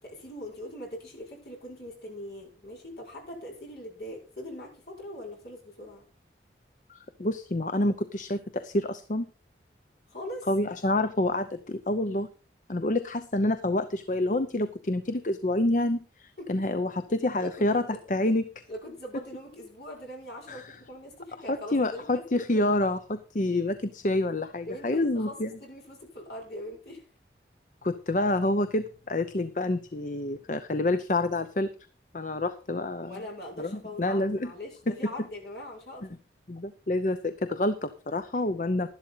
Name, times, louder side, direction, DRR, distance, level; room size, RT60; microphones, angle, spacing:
voice 1, 0.0-6.1 10.1-10.5 16.4-16.6 17.4-17.9 18.7-22.6 24.7-27.1 33.0-36.1 38.3-38.4, left 1 dB, 65° left, -2 dB, 5.7 m, -41 dB
voice 2, 6.9-9.3 10.5-12.3 12.7-18.5 20.5-20.7 21.5-25.5 27.8-31.7 32.1-33.2 33.6-34.5 34.9-35.0 36.5-38.9, left 1 dB, 45° left, 11 dB, 0.7 m, -28 dB
12.0 x 11.5 x 4.0 m, 0.35 s
head